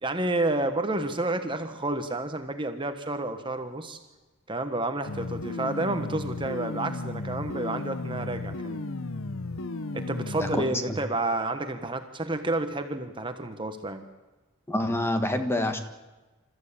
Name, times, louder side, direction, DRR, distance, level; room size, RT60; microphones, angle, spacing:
voice 1, 0.0-4.0 4.5-8.8 9.9-14.0, right 2 dB, 25° right, 7 dB, 1.2 m, -30 dB
sound 1, 5.1-10.7, left 2 dB, 65° left, 0.9 m, -34 dB
voice 2, 10.4-11.0 14.7-15.8, left 1 dB, 10° left, 6 dB, 1.6 m, -27 dB
27.5 x 14.0 x 8.7 m, 1.2 s
head